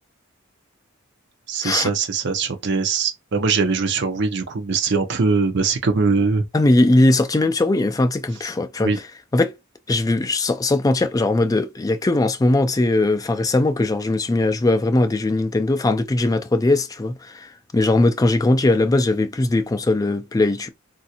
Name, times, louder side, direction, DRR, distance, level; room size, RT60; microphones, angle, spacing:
voice 1, 1.5-6.4 8.8-9.0, right 4 dB, 60° right, 0.6 m, -21 dB
voice 2, 6.5-8.9 9.3-9.6 9.9-20.7, left 2 dB, 20° left, 0.3 m, -19 dB
3.2 x 2.5 x 2.8 m
head